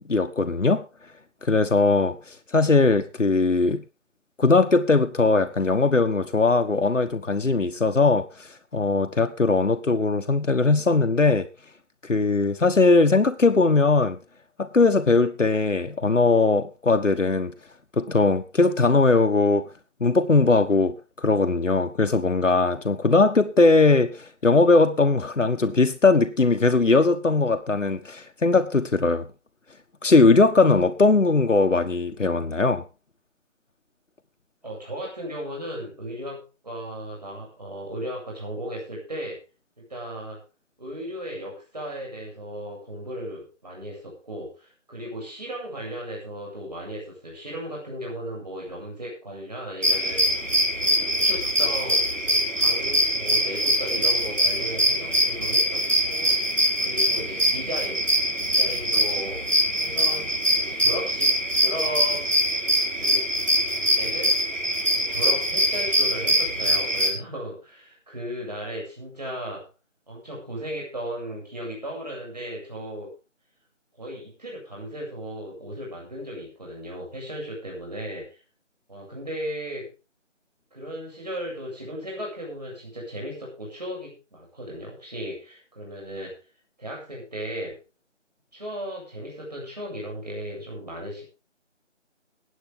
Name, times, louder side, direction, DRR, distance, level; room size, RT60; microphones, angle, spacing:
voice 1, 0.1-0.8 1.4-3.8 4.4-11.5 12.1-14.2 14.6-17.5 18.0-19.7 20.0-29.3 30.0-32.8, left 3 dB, 85° left, 1.4 m, -20 dB
voice 2, 34.6-39.4 39.8-40.4 40.8-50.3 50.8-52.0 52.5-56.3 56.8-58.0 58.4-59.5 59.8-62.3 62.9-63.3 64.0-64.3 65.0-69.7 70.1-73.1 74.0-78.4 78.9-79.9 80.7-86.4 86.8-87.8 88.5-91.2, equal, 35° right, 8.0 m, -36 dB
sound 1, 49.8-67.1, equal, 80° right, 5.0 m, -23 dB
21.0 x 8.8 x 3.7 m
figure-of-eight pair, 180°, 36 cm